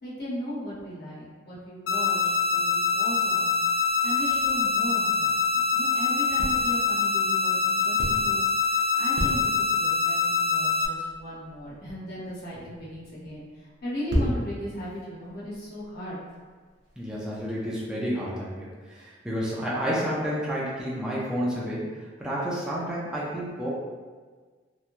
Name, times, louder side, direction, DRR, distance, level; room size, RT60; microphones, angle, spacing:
voice 1, 0.0-3.5 4.0-13.4 13.8-16.2, equal, 50° left, -8 dB, 0.8 m, -37 dB
sound 1, 1.9-10.9, left 5 dB, 80° left, 0.3 m, -24 dB
sound 2, 3.3-6.0 6.4-7.0 7.6-8.7 8.9-10.0 10.6-10.7 11.0-17.5, equal, 65° right, 0.6 m, -34 dB
voice 2, 17.0-21.9 22.2-23.7, equal, 5° right, -7 dB, 0.4 m, -30 dB
3.0 x 2.2 x 2.5 m, 1.5 s
head